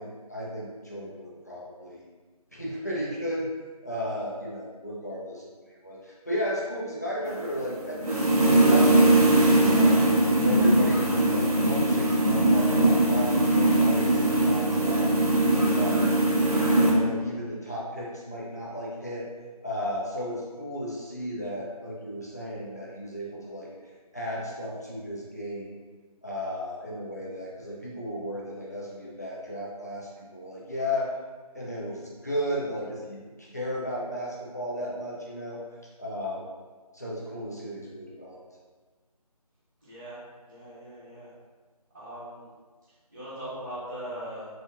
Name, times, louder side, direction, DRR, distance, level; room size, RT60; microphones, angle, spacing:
voice 1, 0.0-2.0 2.5-3.5 3.8-10.1 10.4-15.1 15.7-16.1 16.5-19.3 19.6-23.7 24.1-25.7 26.2-31.1 31.5-35.6 36.0-36.4 36.9-38.4, equal, 25° left, -6 dB, 0.4 m, -34 dB
sound 1, 7.3-16.9, right 1 dB, 70° right, 0.8 m, -21 dB
voice 2, 39.8-40.2 40.4-41.3 41.9-42.5 43.1-44.5, right 1 dB, 25° right, -14 dB, 0.7 m, -40 dB
3.4 x 2.7 x 2.4 m, 1.4 s
figure-of-eight pair, 165°, 20 cm